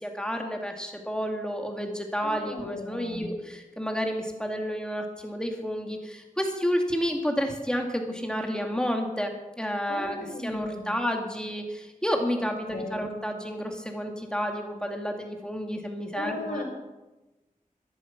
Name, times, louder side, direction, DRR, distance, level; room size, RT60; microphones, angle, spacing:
voice 1, 0.0-9.3 9.6-16.6, equal, 5° left, 3 dB, 2.2 m, -30 dB
voice 2, 2.2-3.3 9.9-10.9 12.4-13.0 16.1-16.6, left 2 dB, 85° left, 0 dB, 4.0 m, -36 dB
13.0 x 11.0 x 5.9 m, 1.1 s
wide cardioid pair, 65°, 14 cm